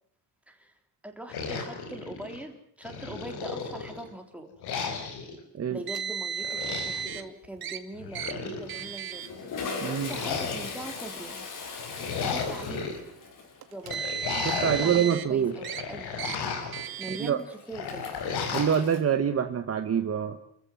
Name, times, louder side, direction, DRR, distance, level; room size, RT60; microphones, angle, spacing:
voice 1, 1.0-4.5 5.7-9.3 9.8-11.5 11.9-12.8 13.7-14.1 14.8-16.1 17.0-18.1, right 1 dB, 5° right, 4 dB, 3.6 m, -42 dB
sound 1, 1.3-2.4 2.8-4.1 4.6-5.4 6.4-7.2 8.0-8.9 10.0-11.0 11.8-13.0 13.8-15.1 15.5-16.8 17.7-18.8, left 5 dB, 90° left, 4.9 m, -34 dB
Car, 5.9-7.2 7.6-7.8 8.1-8.3 8.7-9.3 10.1-10.3 11.2-11.3 13.6-15.3 15.6-15.8 16.2-16.4 16.7-17.3, right 9 dB, 70° right, 2.1 m, -34 dB
Toilet flush, 6.8-7.2 7.4-7.6 8.6-19.0, left 4 dB, 55° left, 5.6 m, -41 dB
voice 2, 9.8-10.1 14.3-15.5 17.2-17.4 18.5-20.4, right 8 dB, 40° right, 7 dB, 1.4 m, -26 dB
29.0 x 14.5 x 7.7 m, 0.72 s
cardioid pair, 145°, 38 cm